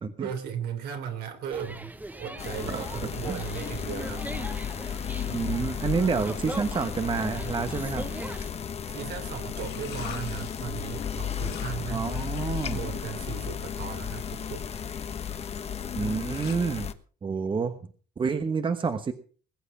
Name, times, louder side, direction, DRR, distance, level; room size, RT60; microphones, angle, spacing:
voice 1, 0.2-1.9 2.2-4.3 8.9-12.4 12.7-14.7, right 8 dB, 75° right, 6 dB, 3.5 m, -36 dB
sound 1, 1.5-8.5, right 2 dB, 10° right, 1.1 m, -40 dB
sound 2, 2.4-16.9, left 8 dB, 40° left, 1.2 m, -34 dB
voice 2, 2.7-3.4 5.3-8.1 11.9-12.8 16.0-16.9 17.2-17.8 18.2-19.1, right 5 dB, 30° right, 8 dB, 1.2 m, -29 dB
sound 3, 9.5-16.6, left 11 dB, 80° left, 2.0 m, -48 dB
21.0 x 8.2 x 5.7 m, 0.42 s
cardioid pair, 110°, 17 cm